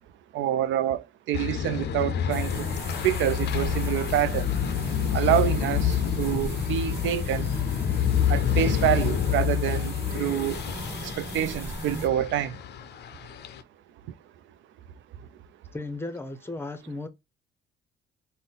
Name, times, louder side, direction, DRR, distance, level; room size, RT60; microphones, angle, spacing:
voice 1, 0.3-2.7 3.0-4.5 5.1-7.5 8.3-10.6 11.0-12.6, right 11 dB, 70° right, 0.4 m, -27 dB
sound 1, 1.3-13.6, left 9 dB, 60° left, 0.5 m, -28 dB
sound 2, 2.3-12.1, right 1 dB, 10° right, 1.4 m, -37 dB
voice 2, 15.7-17.1, left 2 dB, 10° left, 0.6 m, -35 dB
3.7 x 2.1 x 3.9 m
cardioid pair, 90°, 20 cm